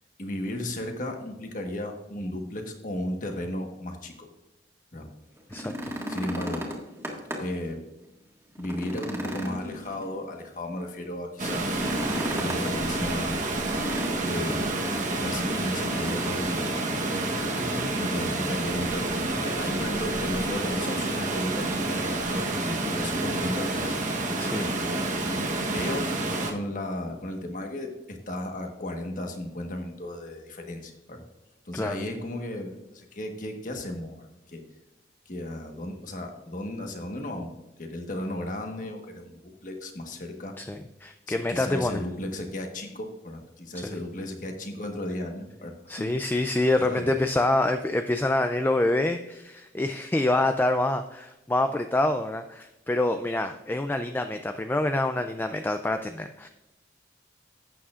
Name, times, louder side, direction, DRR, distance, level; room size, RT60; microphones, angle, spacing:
voice 1, 0.2-4.3 4.9-5.1 6.1-6.7 7.4-7.8 8.6-11.9 12.4-13.5 14.2-14.9 15.2-16.9 18.0-22.4 22.6-24.0 25.2-26.1 26.5-31.2 31.6-34.6 35.2-40.6 41.3-46.1 46.8-47.2, left 1 dB, 45° left, 3 dB, 1.4 m, -35 dB
sound 1, 5.4-7.6 8.0-8.1 8.5-10.4 11.7-12.8 13.7-14.6 15.7-16.4 16.7-16.8 17.4-18.0 19.1-19.2, equal, 15° right, 1.8 m, -35 dB
Water, 11.4-26.5, right 2 dB, 45° right, 1.1 m, -28 dB
voice 2, 17.6-17.9 24.4-24.8 31.7-32.0 40.6-42.0 43.7-44.0 45.9-56.5, left 2 dB, 10° left, 7 dB, 0.3 m, -26 dB
12.5 x 8.7 x 2.5 m, 0.97 s
head